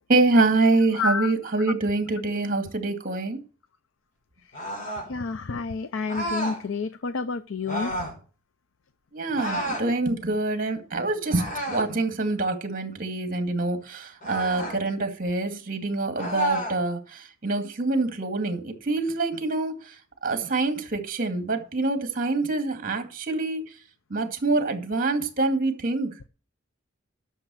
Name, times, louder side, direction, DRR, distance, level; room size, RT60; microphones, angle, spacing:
voice 1, 0.1-3.4 9.1-19.9 20.2-23.7 24.1-26.2, right 3 dB, 45° right, 2.2 m, -25 dB
voice 2, 0.9-1.3 5.1-7.9, left 4 dB, 85° left, 0.6 m, -29 dB
sound 1, 4.5-5.1 6.1-6.6 7.7-8.2 9.4-9.9 11.3-11.9 14.2-14.8 16.2-16.8, equal, 45° left, 4.8 m, -30 dB
11.5 x 7.0 x 6.3 m
head